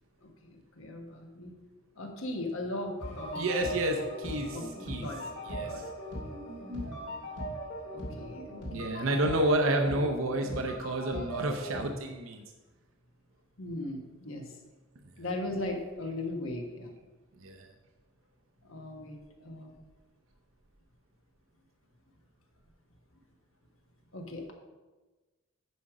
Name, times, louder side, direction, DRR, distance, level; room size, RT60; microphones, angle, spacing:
voice 1, 0.2-1.5 2.0-3.5 4.5-4.6 4.9-5.3 5.6-6.2 7.9-8.9 13.6-14.6 15.2-16.9 18.6-19.8 24.1-24.5, left 1 dB, 75° left, 2 dB, 1.3 m, -38 dB
sound 1, 3.0-11.8, equal, 55° left, 2.9 m, -39 dB
voice 2, 3.3-5.1 5.5-5.8 6.7-7.1 8.7-12.4 15.2-15.3 17.4-17.7, right 1 dB, 75° right, 3 dB, 0.7 m, -30 dB
9.3 x 5.1 x 4.9 m, 1.2 s
head